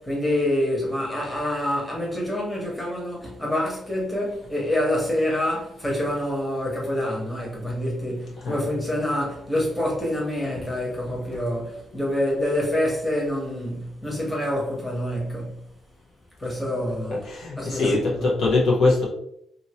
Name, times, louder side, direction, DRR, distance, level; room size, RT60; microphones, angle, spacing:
voice 1, 0.0-15.6 16.4-17.2 17.6-18.3, left 1 dB, 5° left, 1.2 m, -26 dB
voice 2, 17.1-19.0, left 3 dB, 70° left, 1.1 m, -22 dB
2.8 x 2.7 x 2.9 m
cardioid pair, 90°, 0 cm